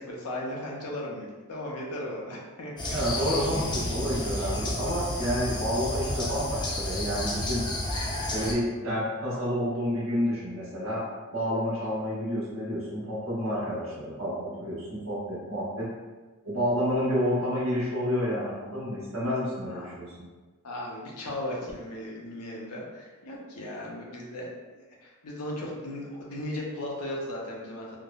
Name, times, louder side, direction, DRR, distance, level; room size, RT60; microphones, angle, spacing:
voice 1, 0.0-3.0 19.6-19.9 20.6-24.5 25.0-28.0, left 1 dB, 90° left, -3 dB, 0.6 m, -36 dB
sound 1, 2.8-8.5, left 1 dB, 20° left, 0.4 m, -31 dB
voice 2, 2.9-7.6 8.3-11.0 11.3-15.9 16.4-20.1, equal, 65° right, -9 dB, 1.2 m, -29 dB
3.5 x 2.0 x 2.3 m, 1.3 s
head